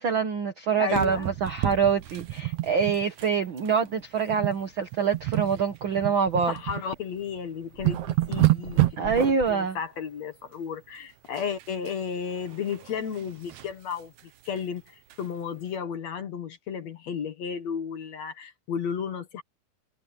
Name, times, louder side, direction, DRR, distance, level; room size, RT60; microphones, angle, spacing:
voice 1, 0.0-6.5 9.0-9.8, right 6 dB, 85° right, 1.1 m, -25 dB
voice 2, 0.8-1.3 6.5-8.9 9.5-14.1 14.5-19.4, left 7 dB, 55° left, 2.3 m, -33 dB
sound 1, 0.9-3.3 3.6-3.8 4.3-4.6 4.9-6.8 7.3-7.4 7.6-9.5 11.4-11.9 12.3-13.7 14.2-14.3 14.6-14.7 15.1-15.2, right 16 dB, 65° right, 2.0 m, -28 dB
omnidirectional pair, 4.4 m